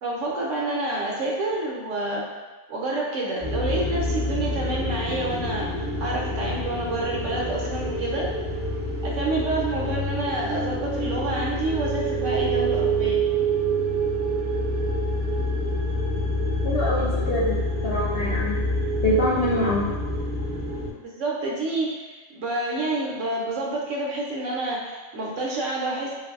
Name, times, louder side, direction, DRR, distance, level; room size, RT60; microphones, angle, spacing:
voice 1, 0.0-2.3 2.7-5.7 6.0-8.3 9.0-13.3 21.0-26.1, right 2 dB, 65° right, -3 dB, 0.9 m, -28 dB
sound 1, 3.4-20.9, right 1 dB, 10° left, 0.5 m, -27 dB
voice 2, 16.6-18.6 19.0-19.9, left 1 dB, 70° left, -8 dB, 0.6 m, -25 dB
3.4 x 2.5 x 2.4 m, 1.2 s
omnidirectional pair, 1.5 m